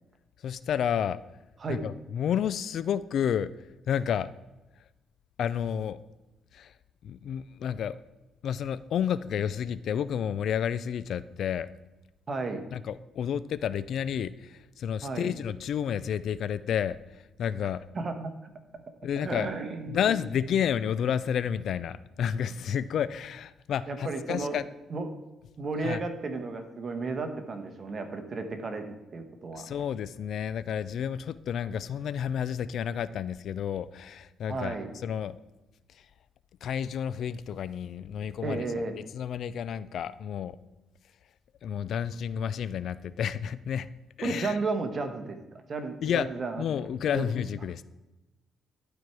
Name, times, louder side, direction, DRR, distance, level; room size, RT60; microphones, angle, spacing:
voice 1, 0.4-1.2 1.7-3.5 3.9-4.3 5.4-6.0 6.5-6.7 7.0-8.0 8.4-11.7 12.7-17.0 17.4-17.8 19.0-19.5 19.9-24.7 25.8-26.0 29.5-35.4 36.6-38.7 39.0-40.6 41.6-43.9 44.2-44.6 46.0-46.3 46.6-47.8, left 8 dB, 70° left, 16 dB, 0.3 m, -30 dB
voice 2, 12.3-12.6 15.0-15.3 17.9-18.5 19.2-20.0 23.9-24.6 24.9-25.1 25.6-29.7 34.5-34.9 38.4-38.9 44.2-46.6 47.1-47.2, right 3 dB, 40° right, 6 dB, 1.2 m, -33 dB
11.5 x 4.5 x 4.8 m, 1.0 s
cardioid pair, 90°, 0 cm